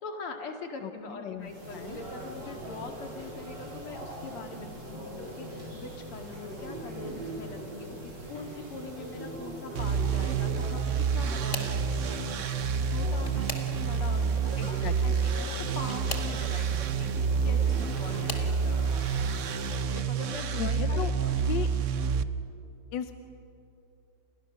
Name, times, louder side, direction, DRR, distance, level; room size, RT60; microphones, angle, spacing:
voice 1, 0.0-18.9 19.9-21.9, left 3 dB, 80° left, 3 dB, 3.2 m, -43 dB
voice 2, 1.2-2.0 14.6-15.2 20.6-21.1 21.4-21.7 22.9-23.2, left 9 dB, 65° left, 8 dB, 1.4 m, -36 dB
sound 1, 1.4-20.0, right 1 dB, 50° right, 5.7 m, -41 dB
sound 2, 9.7-22.2, right 6 dB, 70° right, 0.7 m, -28 dB
sound 3, 11.2-11.9 12.8-14.1 15.7-16.4 17.5-18.5 19.3-19.6 20.1-20.2 21.5-21.6, left 2 dB, 25° left, 1.9 m, -40 dB
29.5 x 29.0 x 6.6 m, 2.8 s
omnidirectional pair, 2.4 m